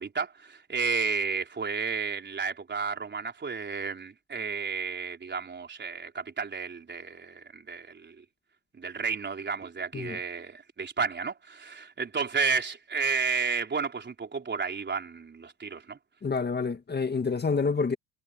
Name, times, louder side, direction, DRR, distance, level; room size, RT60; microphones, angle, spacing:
voice 1, 0.0-8.2 8.8-16.0, right 5 dB, 25° right, 4.5 m, -32 dB
voice 2, 16.2-18.0, left 4 dB, 25° left, 1.9 m, -28 dB
cardioid pair, 110°, 42 cm